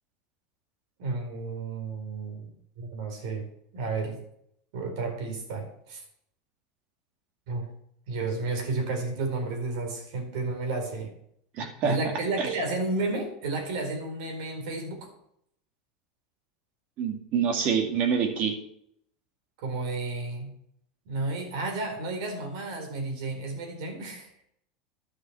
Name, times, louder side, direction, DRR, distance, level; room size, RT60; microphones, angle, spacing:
voice 1, 1.0-2.5 2.8-3.5 3.7-4.2 4.7-6.0 7.5-7.7 8.1-11.1 11.8-15.1 19.6-20.5 21.1-24.3, right 3 dB, 65° right, 3 dB, 4.5 m, -32 dB
voice 2, 11.6-12.0 12.4-12.5 17.0-18.6, right 6 dB, 40° right, 5 dB, 2.2 m, -26 dB
11.0 x 6.4 x 8.7 m, 0.70 s
supercardioid pair, 160°, 3 cm